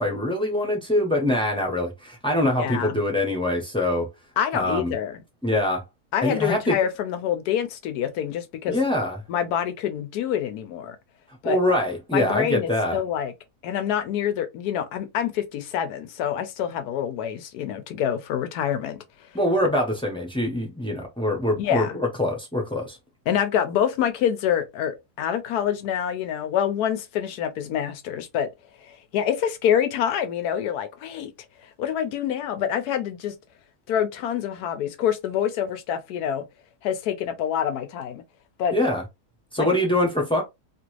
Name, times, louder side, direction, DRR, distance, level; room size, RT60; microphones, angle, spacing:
voice 1, 0.0-4.1 4.5-4.9 5.4-5.8 6.2-6.7 8.7-9.2 11.4-13.0 19.3-23.0 38.7-39.0 39.5-40.4, left 1 dB, 5° left, 0.6 m, -24 dB
voice 2, 2.6-3.0 4.4-5.2 6.1-8.8 9.3-11.0 11.4-11.6 12.1-13.3 13.6-19.0 21.6-22.0 23.3-28.5 28.8-31.3 31.6-33.3 33.9-36.4 36.8-38.2 38.6-38.8 39.6-39.7, left 9 dB, 90° left, 1.1 m, -26 dB
2.9 x 2.5 x 3.0 m
omnidirectional pair, 1.6 m